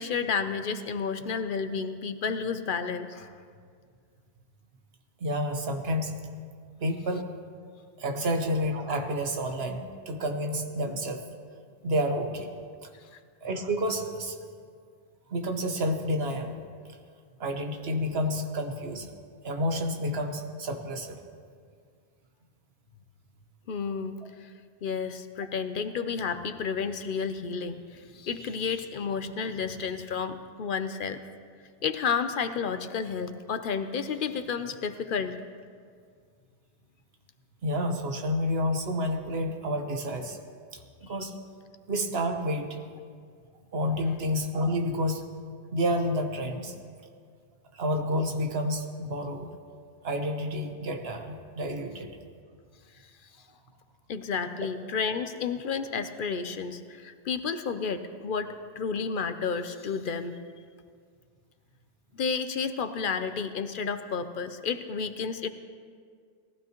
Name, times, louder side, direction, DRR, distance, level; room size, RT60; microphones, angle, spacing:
voice 1, 0.0-3.3 23.7-24.5 24.8-31.2 31.8-35.4 54.1-60.4 62.1-65.5, left 5 dB, 60° left, 10 dB, 0.7 m, -31 dB
voice 2, 5.2-6.2 6.8-7.3 8.0-11.2 11.8-12.5 13.4-14.4 15.3-16.5 17.4-19.1 19.4-21.2 37.6-40.4 40.7-41.3 41.9-42.8 43.7-45.2 45.7-46.7 47.7-49.5 50.0-52.1, equal, 75° right, 5 dB, 1.3 m, -29 dB
19.0 x 14.5 x 3.0 m, 2.1 s
omnidirectional pair, 1.0 m